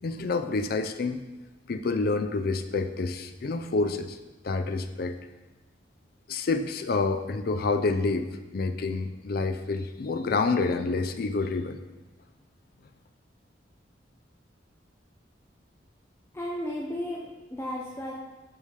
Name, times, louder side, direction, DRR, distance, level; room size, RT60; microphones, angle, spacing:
voice 1, 0.0-1.2 1.7-4.2 4.4-5.2 6.3-8.3 8.5-11.8, left 3 dB, 55° left, 8 dB, 0.5 m, -28 dB
voice 2, 16.3-18.1, left 1 dB, 15° left, -4 dB, 0.7 m, -34 dB
8.4 x 5.2 x 3.3 m, 1.2 s
head